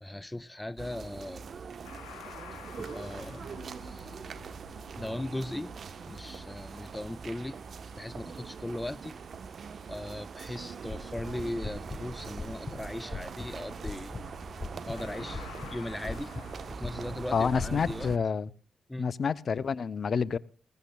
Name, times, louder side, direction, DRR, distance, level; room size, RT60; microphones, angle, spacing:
voice 1, 0.0-1.5 2.8-3.5 3.8-4.2 5.0-5.8 6.1-7.6 7.9-9.1 9.9-14.1 14.9-16.4 16.7-18.1 18.9-19.1, left 1 dB, 15° left, 0.5 m, -38 dB
sound 1, 0.8-18.2, right 5 dB, 60° right, 1.0 m, -42 dB
sound 2, 1.8-9.0 14.2-14.6 14.9-16.7, left 8 dB, 85° left, 1.8 m, -52 dB
sound 3, 10.9-18.0, left 3 dB, 30° left, 1.5 m, -42 dB
voice 2, 17.3-18.5 19.0-20.4, left 6 dB, 55° left, 0.6 m, -28 dB
20.5 x 16.5 x 2.3 m
supercardioid pair, 45°, 0 cm